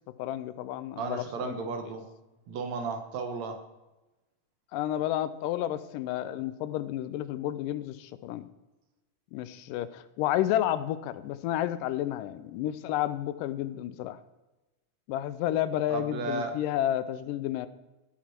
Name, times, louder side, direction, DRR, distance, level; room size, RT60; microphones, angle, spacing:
voice 1, 0.2-1.5 4.7-8.5 9.3-14.2 15.1-17.7, left 12 dB, 90° left, 14 dB, 2.2 m, -31 dB
voice 2, 1.0-2.1 2.5-3.6 15.9-16.5, right 4 dB, 65° right, 6 dB, 2.0 m, -34 dB
17.0 x 5.9 x 4.4 m, 1.1 s
omnidirectional pair, 3.8 m